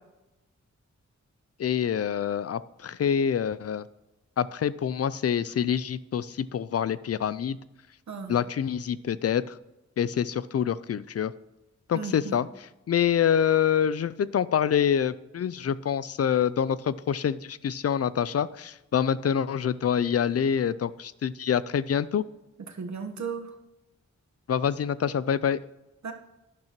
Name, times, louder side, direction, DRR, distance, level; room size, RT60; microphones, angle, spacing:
voice 1, 1.6-3.9 4.4-7.6 8.3-9.6 10.0-11.3 11.9-12.5 12.9-22.2 24.5-25.6, left 8 dB, 55° left, 17 dB, 0.4 m, -26 dB
voice 2, 11.9-12.4 22.7-23.5 26.0-26.1, right 5 dB, 75° right, 5 dB, 1.2 m, -35 dB
11.5 x 10.5 x 3.0 m, 0.98 s
wide cardioid pair, 75°, 29 cm